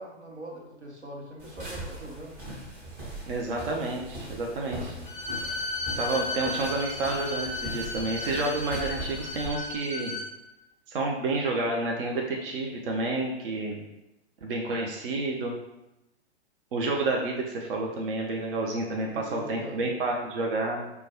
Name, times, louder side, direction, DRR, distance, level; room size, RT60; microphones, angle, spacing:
voice 1, 0.0-2.4 19.1-20.0, right 1 dB, 85° right, -1 dB, 0.9 m, -42 dB
sound 1, 1.4-9.5, right 1 dB, 25° right, 1.3 m, -40 dB
voice 2, 3.3-4.9 6.0-10.2 10.9-13.8 14.4-15.6 16.7-20.9, right 2 dB, 55° right, 0 dB, 0.5 m, -30 dB
Bowed string instrument, 5.1-10.3, left 2 dB, 20° left, 0.7 m, -34 dB
4.3 x 2.2 x 2.9 m, 0.91 s
figure-of-eight pair, 110°, 34 cm